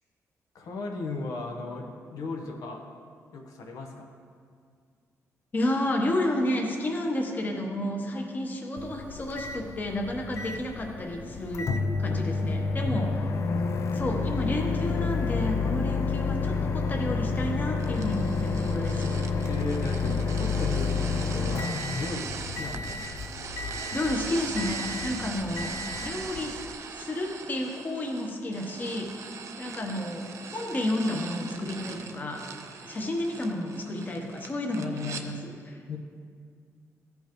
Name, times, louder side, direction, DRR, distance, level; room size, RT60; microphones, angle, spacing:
voice 1, 0.5-2.8 3.3-4.1 13.0-13.1 19.5-20.0 20.3-23.0 35.9-36.0, left 3 dB, 80° left, 2 dB, 0.9 m, -36 dB
voice 2, 5.5-11.7 12.0-13.2 13.9-19.2 23.9-25.7 26.0-26.6 27.0-29.1 29.6-32.4 32.9-35.8, left 1 dB, 30° left, 1 dB, 1.0 m, -31 dB
Microwave oven, 8.8-26.7, left 4 dB, 55° left, 0.4 m, -30 dB
sound 1, 17.8-35.2, right 5 dB, 60° right, 0.6 m, -40 dB
14.5 x 5.4 x 3.0 m, 2.1 s
cardioid pair, 135°, 6 cm